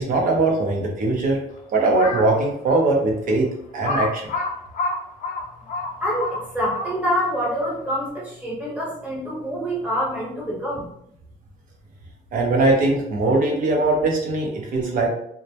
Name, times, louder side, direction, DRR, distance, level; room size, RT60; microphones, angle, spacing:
voice 1, 0.0-1.4 1.7-4.3 12.3-15.1, right 2 dB, 55° right, 0 dB, 0.7 m, -21 dB
Crow, 1.9-2.4 2.9-3.0 3.8-7.2, left 3 dB, 50° left, 0.5 m, -28 dB
voice 2, 6.0-10.8, equal, 10° right, -5 dB, 1.1 m, -26 dB
2.1 x 2.1 x 2.7 m, 0.74 s
cardioid pair, 110°, 17 cm